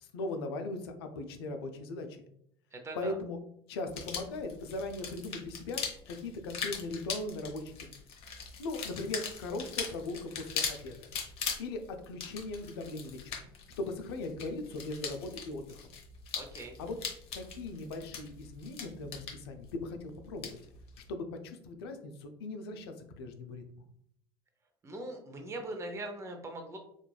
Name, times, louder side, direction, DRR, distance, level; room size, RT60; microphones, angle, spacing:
voice 1, 0.0-2.3 2.9-3.4 3.7-7.9 8.6-11.1 11.6-13.4 13.8-15.8 16.8-17.0 17.3-20.6 21.1-23.6, left 2 dB, 80° left, 6 dB, 0.5 m, -39 dB
voice 2, 2.7-3.1 16.4-16.8 24.8-26.8, right 2 dB, 20° right, 3 dB, 0.7 m, -41 dB
sound 1, 3.9-21.1, left 6 dB, 50° left, 0.8 m, -41 dB
3.0 x 2.4 x 2.2 m, 0.70 s
hypercardioid pair, 85°, 13 cm